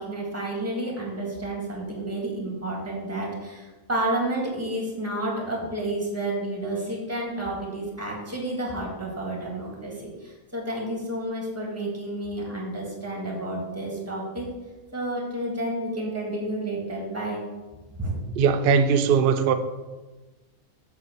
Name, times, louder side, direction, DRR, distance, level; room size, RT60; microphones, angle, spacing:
voice 1, 0.0-14.5 14.9-17.4 17.9-18.2 19.1-19.2, right 1 dB, 10° right, 1.9 m, -30 dB
voice 2, 18.4-19.5, right 6 dB, 60° right, 0.6 m, -20 dB
8.6 x 3.6 x 6.8 m
omnidirectional pair, 1.5 m